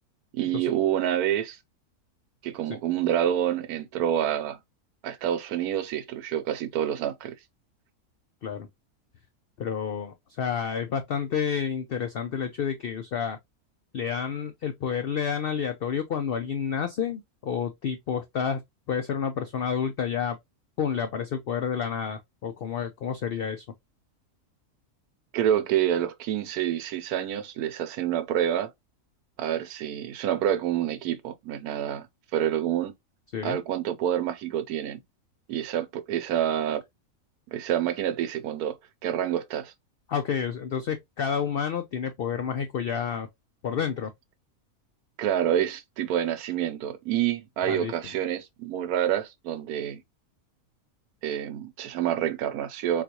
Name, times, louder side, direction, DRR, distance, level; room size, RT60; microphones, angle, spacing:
voice 1, 0.3-1.6 2.4-4.6 5.0-7.3 25.3-28.7 29.4-32.1 32.3-32.9 33.4-35.0 35.5-36.8 37.5-38.8 39.0-39.7 45.2-50.0 51.2-53.0, right 10 dB, 90° right, 1.1 m, -27 dB
voice 2, 9.6-13.4 13.9-18.6 18.9-20.4 20.8-23.6 33.3-33.6 40.1-43.3 43.6-44.1 47.7-47.9, left 7 dB, 90° left, 0.5 m, -29 dB
3.9 x 2.4 x 2.8 m
omnidirectional pair, 1.6 m